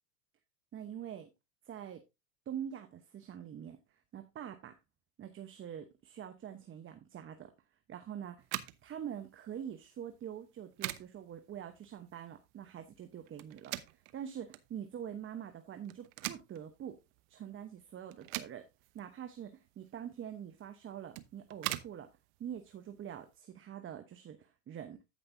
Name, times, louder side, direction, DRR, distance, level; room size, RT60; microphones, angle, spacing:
voice 1, 0.7-1.3 1.6-2.0 2.5-3.8 4.1-4.7 5.2-7.5 7.9-8.5 8.8-17.0 17.3-18.7 18.9-22.1 22.4-25.0, right 9 dB, 25° right, 0.9 m, -45 dB
sound 1, 8.4-23.4, right 18 dB, 55° right, 0.9 m, -45 dB
14.5 x 5.4 x 2.6 m
hypercardioid pair, 105°, 48 cm